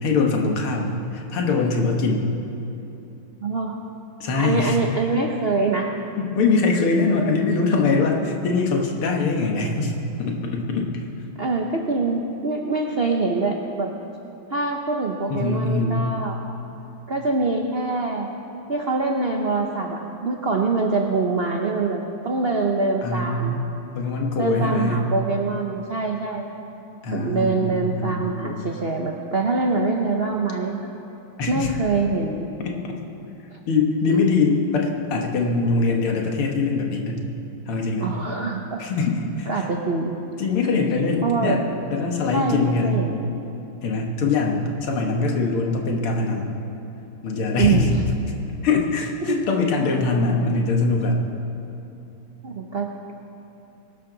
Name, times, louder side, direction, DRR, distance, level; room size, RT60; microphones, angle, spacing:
voice 1, 0.0-2.2 4.2-4.8 6.2-11.0 15.3-15.9 23.0-23.6 23.9-25.0 27.0-28.7 31.4-31.7 32.7-32.8 33.7-37.2 37.7-38.1 38.8-39.6 40.4-41.6 41.9-43.0 43.8-46.5 47.2-48.0 48.6-51.2, left 3 dB, 90° left, 1 dB, 2.3 m, -22 dB
voice 2, 3.4-3.8 4.3-5.9 11.4-13.9 14.5-16.4 17.1-18.3 18.7-23.6 24.4-26.5 27.1-30.9 31.5-32.5 33.5-33.6 34.1-34.2 38.0-38.8 39.5-40.1 41.2-41.6 42.3-43.1 47.6-48.0 49.2-49.5 52.4-53.1, right 3 dB, 65° right, 1 dB, 0.5 m, -24 dB
21.5 x 12.5 x 4.0 m, 2.9 s
omnidirectional pair, 2.3 m